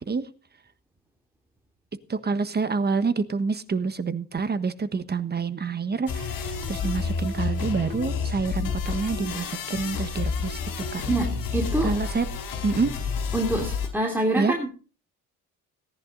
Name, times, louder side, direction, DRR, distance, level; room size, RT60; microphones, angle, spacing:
voice 1, 2.1-10.6 10.9-11.1 11.8-12.3 12.6-13.0 14.4-14.6, right 4 dB, 30° right, 12 dB, 1.4 m, -27 dB
sound 1, 6.1-13.9, left 5 dB, 80° left, 5.0 m, -30 dB
voice 2, 11.1-12.0 13.3-14.7, right 1 dB, 5° right, 1 dB, 2.8 m, -26 dB
18.0 x 10.5 x 4.0 m, 0.36 s
cardioid pair, 120°, 33 cm